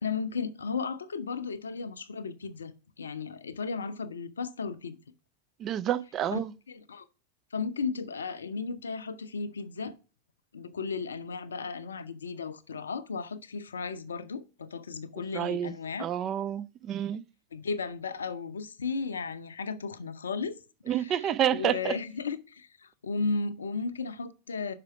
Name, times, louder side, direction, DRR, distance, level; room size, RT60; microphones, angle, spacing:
voice 1, 0.0-2.7 3.0-5.0 6.3-6.4 6.7-7.1 7.5-10.0 10.5-16.0 17.5-20.6 20.9-24.7, left 4 dB, 70° left, 0.6 m, -35 dB
voice 2, 5.6-6.5 15.3-17.2 20.9-22.0, right 10 dB, 30° right, 0.4 m, -29 dB
5.8 x 4.8 x 5.8 m
figure-of-eight pair, 90°, 0 cm